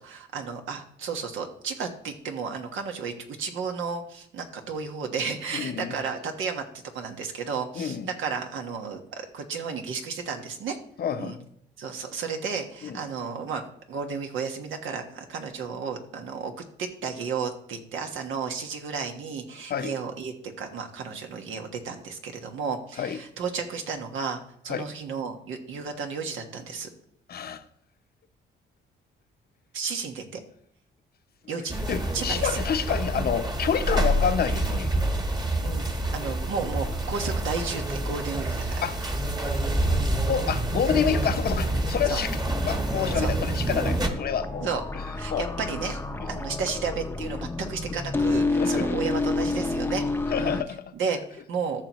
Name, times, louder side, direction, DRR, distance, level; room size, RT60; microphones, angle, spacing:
voice 1, 0.0-6.6 6.9-10.8 11.2-11.4 11.8-13.6 13.9-16.5 16.8-26.9 29.7-30.4 31.5-31.8 32.1-32.6 35.6-38.8 42.1-42.2 43.2-43.3 44.6-44.8 45.1-46.0 46.3-50.0 50.4-50.6 50.9-51.8, right 5 dB, 80° right, 4 dB, 1.4 m, -33 dB
voice 2, 5.5-5.9 7.7-8.1 11.0-11.4 12.8-13.0 19.7-19.9 23.0-23.2 24.7-24.9 27.3-27.6 31.9-34.9 38.8-39.0 39.4-39.5 39.9-40.0 40.3-42.4 42.7-44.7 45.3-45.4 46.2-46.3 48.5-48.9 50.3-50.9, left 8 dB, 50° left, 9 dB, 0.8 m, -28 dB
sound 1, 31.7-44.1, right 1 dB, 20° right, 1.3 m, -27 dB
sound 2, 42.5-50.6, left 3 dB, 10° left, 0.7 m, -30 dB
14.0 x 6.0 x 3.1 m, 0.70 s
cardioid pair, 90°, 20 cm